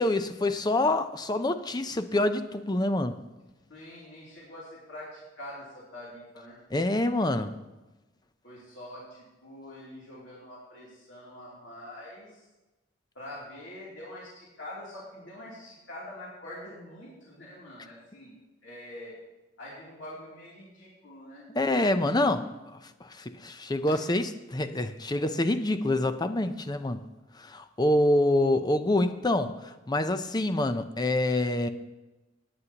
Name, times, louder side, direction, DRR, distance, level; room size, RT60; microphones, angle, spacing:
voice 1, 0.0-3.2 6.7-7.6 21.6-27.0 27.4-31.7, left 1 dB, 20° left, 0.6 m, -26 dB
voice 2, 3.7-6.6 8.4-12.4 13.1-18.3 18.6-19.2 19.6-21.5 22.1-22.3 23.8-24.0, left 1 dB, 80° left, 3.0 m, -45 dB
17.5 x 9.5 x 2.9 m
head